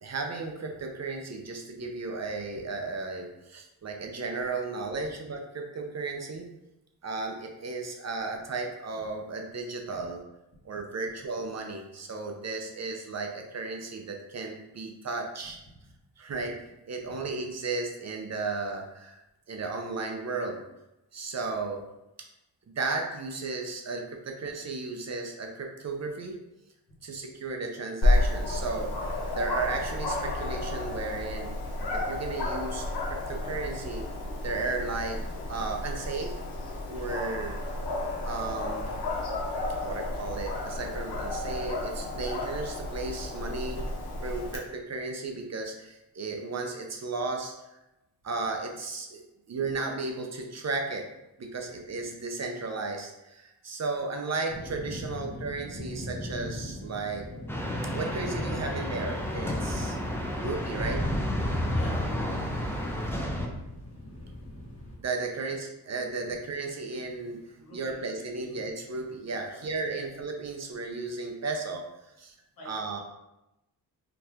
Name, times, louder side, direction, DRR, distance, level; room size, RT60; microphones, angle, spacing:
voice 1, 0.0-6.5 7.0-10.2 10.6-15.6 16.2-16.6 16.9-19.2 19.5-20.6 21.1-21.8 22.7-26.4 27.0-28.9 29.3-31.5 31.9-34.0 34.4-35.2 35.5-36.3 36.9-37.6 38.2-39.0 39.8-43.9 44.2-47.5 48.2-49.2 49.5-51.1 51.4-57.3 57.9-60.0 60.4-61.0 65.0-67.4 67.7-71.8 72.2-72.3 72.7-73.0, right 3 dB, 45° right, 2 dB, 0.5 m, -34 dB
Dog, 28.0-44.6, left 2 dB, 85° left, 0.8 m, -31 dB
sound 1, 54.5-65.0, left 1 dB, 35° left, 1.4 m, -36 dB
sound 2, 57.5-63.5, equal, 5° left, 0.4 m, -33 dB
voice 2, 61.7-62.5 65.3-65.5 67.6-68.7 69.4-70.1 72.6-73.0, left 1 dB, 60° left, -4 dB, 1.2 m, -50 dB
2.8 x 2.4 x 3.4 m, 0.91 s
cardioid pair, 70°, 39 cm